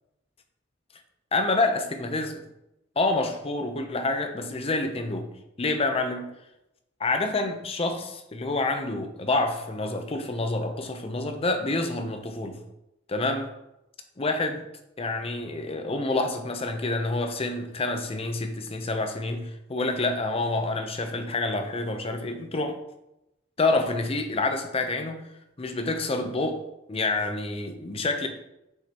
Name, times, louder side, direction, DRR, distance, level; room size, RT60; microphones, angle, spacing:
voice 1, 1.3-2.4 3.0-5.3 5.6-6.3 7.0-12.6 13.1-13.5 14.2-14.6 15.0-22.8 23.6-25.2 25.6-26.6 26.9-28.3, left 2 dB, 30° left, 6 dB, 0.7 m, -27 dB
6.6 x 5.1 x 2.9 m, 0.88 s
head